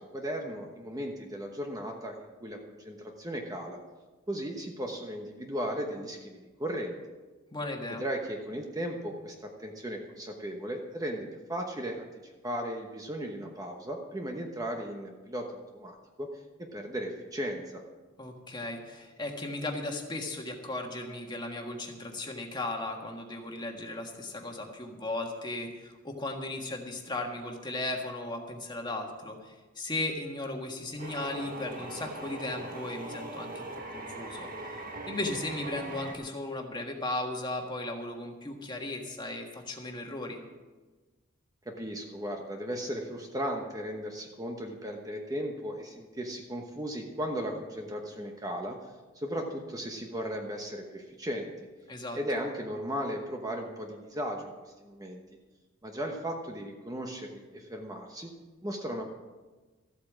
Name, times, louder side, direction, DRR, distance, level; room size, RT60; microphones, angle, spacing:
voice 1, 0.0-3.8 4.3-6.9 8.0-16.3 16.6-17.8 41.7-48.8 49.1-51.5 52.1-54.5 54.8-55.2 55.8-58.3 58.6-59.0, equal, 15° right, 2 dB, 1.0 m, -36 dB
voice 2, 7.5-8.0 18.2-34.5 35.1-40.4 51.9-52.2, left 2 dB, 20° left, 2 dB, 1.6 m, -36 dB
sound 1, 31.0-36.1, right 2 dB, 45° right, 1.6 m, -40 dB
14.0 x 8.4 x 7.4 m, 1.3 s
head